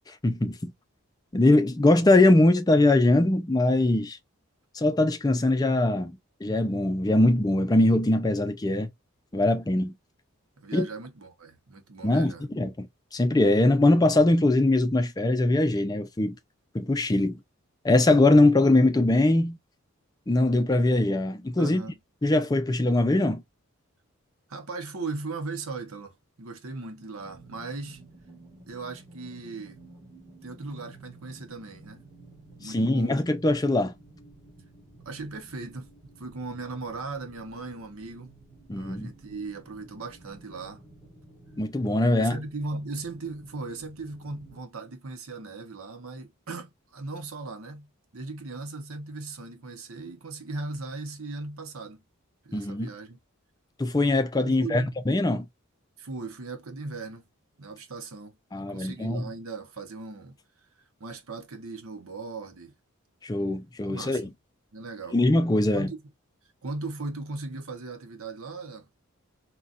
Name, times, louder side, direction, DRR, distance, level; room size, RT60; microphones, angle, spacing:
voice 1, 0.2-0.7 1.3-4.2 4.8-8.9 9.3-9.9 10.7-10.9 12.0-12.9 13.1-16.3 16.7-17.4 17.8-19.6 20.3-21.8 22.2-23.4 32.6-33.9 38.7-39.1 41.6-42.4 52.5-52.9 53.8-55.5 58.5-59.2 63.2-64.3 65.1-65.9, left 2 dB, 15° left, 0.4 m, -22 dB
voice 2, 10.6-12.5 21.6-22.0 24.5-28.0 28.7-29.8 30.4-32.0 32.6-33.1 35.0-35.9 36.2-38.3 38.7-40.8 42.2-47.9 48.1-52.0 52.4-53.2 54.4-55.0 56.0-57.3 57.6-60.4 61.0-62.7 63.8-64.3 64.7-65.2 65.7-66.0 66.6-68.9, right 3 dB, 70° right, 0.8 m, -38 dB
sound 1, 27.2-44.6, right 2 dB, 5° right, 1.1 m, -52 dB
3.9 x 2.2 x 2.4 m
head